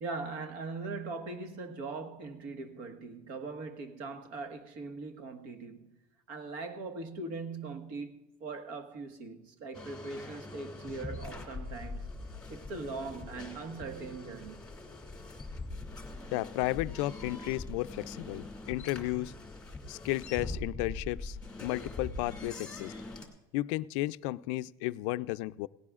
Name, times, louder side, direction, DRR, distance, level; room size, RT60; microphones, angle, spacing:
voice 1, 0.0-5.9 6.3-12.1 12.5-14.7, right 3 dB, 60° right, 1.5 m, -41 dB
sound 1, 9.7-23.3, left 2 dB, 5° left, 2.3 m, -43 dB
voice 2, 16.3-19.3 19.9-22.9 23.5-25.7, left 18 dB, 75° left, 0.4 m, -33 dB
17.5 x 16.5 x 2.4 m
cardioid pair, 155°, 16 cm